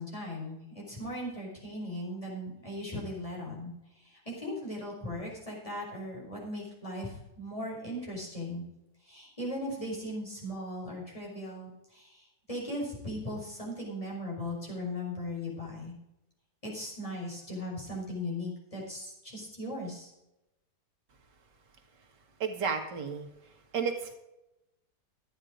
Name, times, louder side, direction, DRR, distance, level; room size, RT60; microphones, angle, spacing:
voice 1, 0.0-8.6 9.0-15.9 16.6-20.1, left 1 dB, 20° left, -4 dB, 4.8 m, -38 dB
voice 2, 22.4-23.3 23.7-24.1, right 6 dB, 90° right, 5 dB, 2.2 m, -32 dB
12.5 x 9.2 x 5.1 m, 0.91 s
omnidirectional pair, 1.8 m